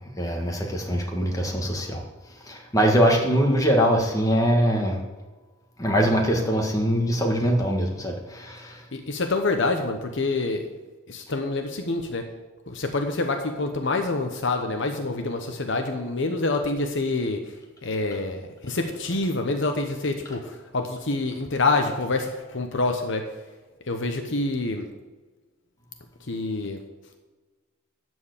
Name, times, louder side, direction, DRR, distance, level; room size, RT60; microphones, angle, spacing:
voice 1, 0.2-2.0 2.4-5.0 5.8-8.8, equal, 15° left, 1 dB, 1.8 m, -22 dB
voice 2, 8.9-10.6 11.1-12.2 12.7-17.4 17.8-20.4 20.7-23.2 23.9-24.8 26.3-26.8, left 3 dB, 60° left, 5 dB, 1.0 m, -26 dB
13.0 x 4.7 x 8.2 m, 1.3 s
head